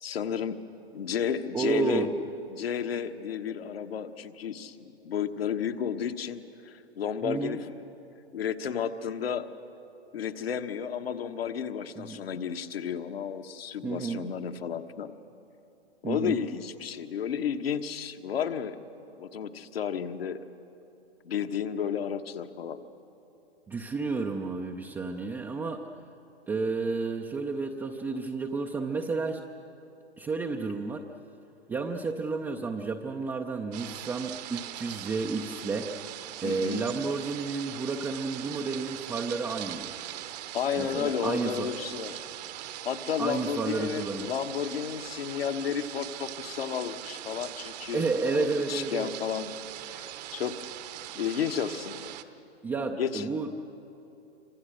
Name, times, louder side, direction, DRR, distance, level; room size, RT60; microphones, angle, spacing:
voice 1, 0.0-0.6 0.9-2.1 2.5-7.9 8.3-9.5 10.1-15.1 16.0-18.8 19.2-20.4 21.2-22.8 36.4-36.8 40.5-42.2 42.8-49.5 49.9-50.6 51.1-52.1 52.9-53.3, left 8 dB, 60° left, 7 dB, 1.4 m, -32 dB
voice 2, 1.5-2.1 7.2-7.6 12.0-12.2 13.8-14.3 16.0-16.4 23.7-25.8 26.5-29.4 30.2-31.1 31.7-35.9 36.4-39.9 40.8-41.7 43.2-44.3 47.9-49.1 52.6-53.5, right 4 dB, 5° right, 1 dB, 0.5 m, -31 dB
sound 1, 33.7-52.2, right 13 dB, 35° right, 1.0 m, -41 dB
27.0 x 25.0 x 6.4 m, 3.0 s
figure-of-eight pair, 120°, 33 cm